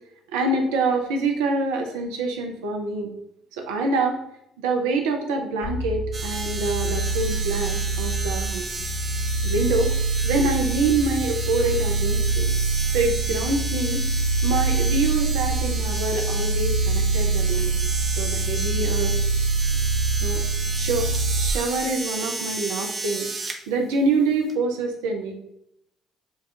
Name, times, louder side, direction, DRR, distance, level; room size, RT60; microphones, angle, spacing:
voice 1, 0.3-3.1 3.6-4.2 4.6-8.7 9.4-9.9 10.2-12.5 12.9-14.0 14.4-17.7 18.2-19.2 20.2-20.4 20.8-21.1 21.4-23.3 23.7-25.3, right 3 dB, 75° right, 3 dB, 0.6 m, -25 dB
sound 1, 5.6-21.5, right 3 dB, 35° left, 0.7 m, -25 dB
sound 2, 6.1-23.6 24.5-24.6, right 3 dB, 40° right, 0.7 m, -33 dB
7.2 x 2.4 x 2.8 m, 0.79 s
hypercardioid pair, 50°, 0 cm